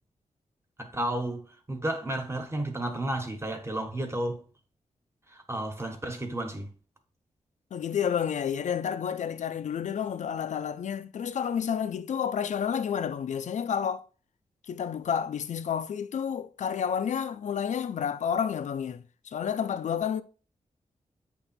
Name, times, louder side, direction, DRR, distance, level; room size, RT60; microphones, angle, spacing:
voice 1, 0.8-4.4 5.3-6.7, right 1 dB, 20° right, 1.4 m, -32 dB
voice 2, 7.7-14.0 14.7-20.2, left 8 dB, 75° left, 0.5 m, -30 dB
8.0 x 3.0 x 4.3 m
cardioid pair, 65°, 13 cm